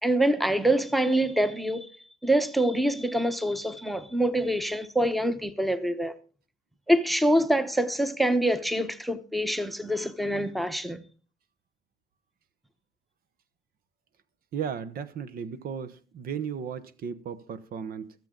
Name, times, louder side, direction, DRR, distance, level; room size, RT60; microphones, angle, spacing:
voice 1, 0.0-1.9 2.2-6.1 6.9-11.0, right 1 dB, ahead, 1.0 m, -25 dB
voice 2, 14.5-18.1, right 7 dB, 60° right, 1.0 m, -35 dB
22.5 x 7.6 x 3.8 m
cardioid pair, 110°, 17 cm